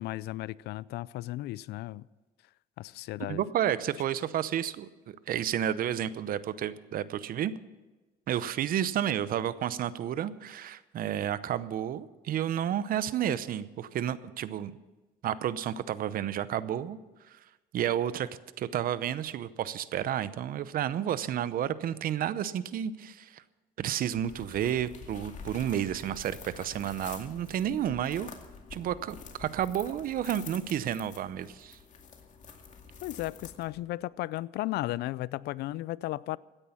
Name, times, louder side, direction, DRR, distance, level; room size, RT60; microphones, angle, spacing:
voice 1, 0.0-2.1 2.8-3.4 33.0-36.4, left 17 dB, 75° left, 0.4 m, -35 dB
voice 2, 3.3-7.5 8.3-14.7 15.2-17.0 17.3-17.4 17.7-18.3 18.6-23.4 23.8-28.3 28.7-31.8, right 10 dB, 60° right, 0.8 m, -31 dB
sound 1, 24.1-33.9, left 5 dB, 45° left, 2.3 m, -48 dB
16.0 x 10.0 x 7.1 m
cardioid pair, 110°, 17 cm